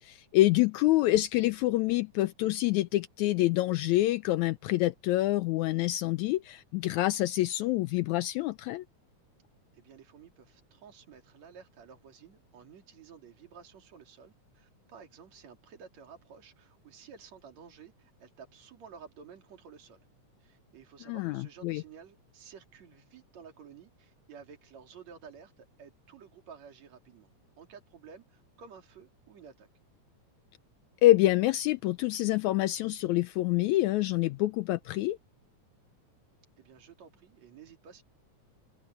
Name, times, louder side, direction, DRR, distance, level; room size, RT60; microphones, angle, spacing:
voice 1, 0.0-8.8 21.1-21.8 31.0-35.2, left 16 dB, 80° left, 1.9 m, -26 dB
voice 2, 9.7-20.1 20.4-27.3 27.6-29.7 36.6-38.0, right 6 dB, 60° right, 4.1 m, -52 dB
omnidirectional pair, 3.5 m